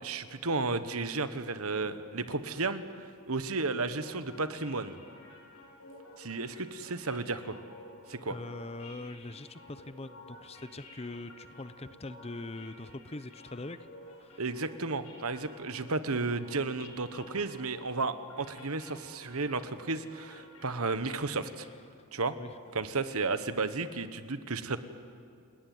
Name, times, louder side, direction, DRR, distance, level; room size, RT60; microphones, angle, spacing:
voice 1, 0.0-5.0 6.2-7.6 8.1-8.4 14.4-21.7 22.1-22.3 22.7-24.8, right 3 dB, 80° right, 11 dB, 1.3 m, -33 dB
sound 1, 3.8-21.7, left 1 dB, 80° left, 6.3 m, -53 dB
voice 2, 8.3-13.9 14.2-14.4 21.6-21.7 22.3-22.6, left 2 dB, 30° left, 14 dB, 0.7 m, -42 dB
29.5 x 19.0 x 9.5 m, 2.4 s
head